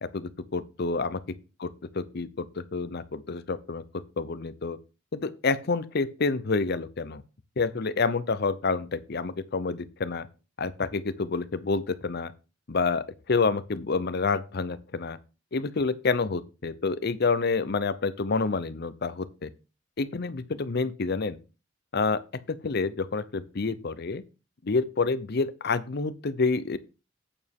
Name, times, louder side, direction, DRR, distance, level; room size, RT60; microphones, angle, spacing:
voice 1, 0.0-1.2 1.6-1.7 2.0-3.8 4.2-4.8 5.1-7.2 7.6-10.3 10.6-12.3 12.7-15.2 15.5-19.5 20.0-21.4 21.9-22.2 22.6-24.2 24.6-26.8, left 4 dB, 55° left, 0.7 m, -28 dB
8.7 x 6.9 x 3.6 m
head